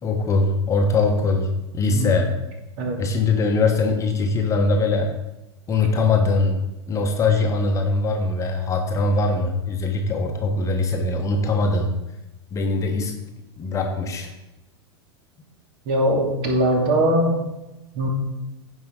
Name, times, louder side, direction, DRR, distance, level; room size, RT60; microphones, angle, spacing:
voice 1, 0.0-1.5 1.7-2.3 3.0-5.1 5.7-6.5 6.9-11.9 12.5-13.1 13.6-14.3, left 3 dB, 20° left, 2 dB, 1.2 m, -21 dB
voice 2, 15.9-17.3 17.9-18.1, right 1 dB, 45° right, 0 dB, 2.6 m, -20 dB
15.5 x 5.4 x 3.8 m, 0.97 s
figure-of-eight pair, 90°, 14 cm